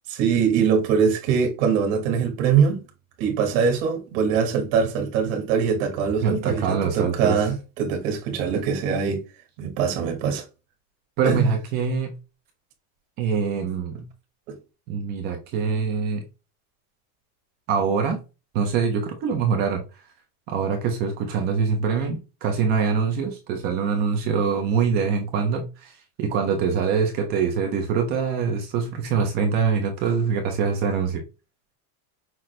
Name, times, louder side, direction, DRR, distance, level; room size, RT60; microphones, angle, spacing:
voice 1, 0.1-2.8 3.2-9.2 9.6-10.4 11.2-11.5 14.5-14.6, right 6 dB, 55° right, 1.6 m, -22 dB
voice 2, 6.2-7.4 11.2-12.1 13.2-14.0 14.9-16.2 17.7-18.2 18.5-19.8 20.5-31.2, right 6 dB, 25° right, 0.3 m, -24 dB
5.8 x 2.5 x 3.0 m
cardioid pair, 175°, 46 cm